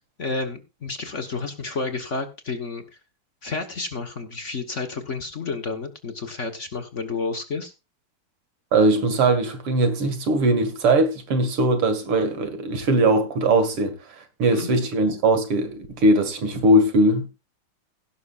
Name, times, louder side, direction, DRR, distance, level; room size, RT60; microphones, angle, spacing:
voice 1, 0.2-2.8 3.4-7.7 14.4-14.7, left 4 dB, 40° left, 1.4 m, -30 dB
voice 2, 8.7-17.3, right 1 dB, 85° right, 2.9 m, -20 dB
16.5 x 11.0 x 2.5 m
omnidirectional pair, 2.4 m